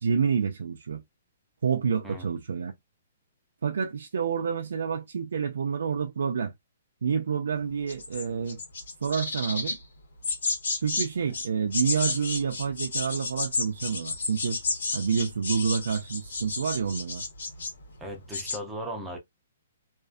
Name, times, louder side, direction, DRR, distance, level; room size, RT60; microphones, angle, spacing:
voice 1, 0.0-1.0 1.6-2.7 3.6-6.5 7.0-8.6 9.0-9.8 10.8-14.6 14.9-17.2, right 6 dB, 80° right, 0.4 m, -28 dB
sound 1, 7.9-9.8 10.2-11.1 11.3-17.8 18.1-18.6, left 3 dB, 85° left, 1.1 m, -31 dB
voice 2, 18.0-19.2, equal, 5° right, 0.5 m, -37 dB
2.4 x 2.4 x 2.5 m
hypercardioid pair, 170°, 0 cm